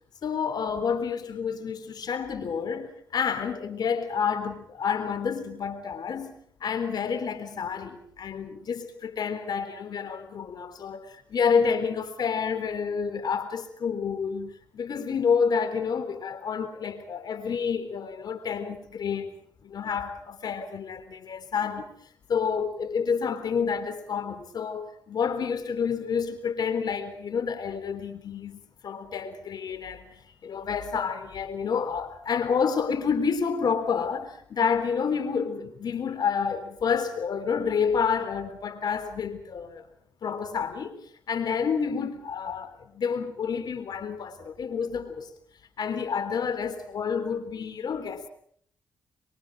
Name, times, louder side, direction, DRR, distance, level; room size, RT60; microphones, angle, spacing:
voice 1, 0.2-19.3 19.6-21.9 22.3-30.1 30.4-39.8 40.2-41.0 41.3-45.3 45.8-48.3, left 6 dB, 65° left, 4.0 m, -29 dB
27.0 x 25.0 x 5.0 m
supercardioid pair, 60°, 7 cm